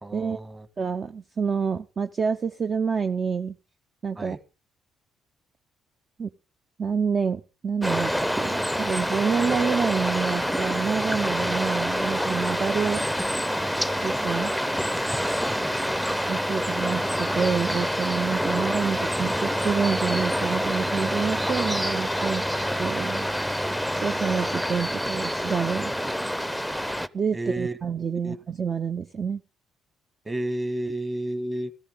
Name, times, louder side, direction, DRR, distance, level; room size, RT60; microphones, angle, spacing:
voice 1, 0.0-0.6 4.2-4.4 15.4-15.7 27.3-27.7 28.2-28.4 30.2-31.7, right 1 dB, 25° right, 1.6 m, -31 dB
voice 2, 0.8-3.5 4.0-4.4 6.2-6.3 6.8-13.1 13.9-14.5 16.3-22.5 22.8-23.3 24.0-25.9 27.1-29.4, right 6 dB, 45° right, 0.6 m, -28 dB
sound 1, 7.8-27.1, equal, 5° right, 0.6 m, -27 dB
14.0 x 13.5 x 3.7 m
hypercardioid pair, 50°, 0 cm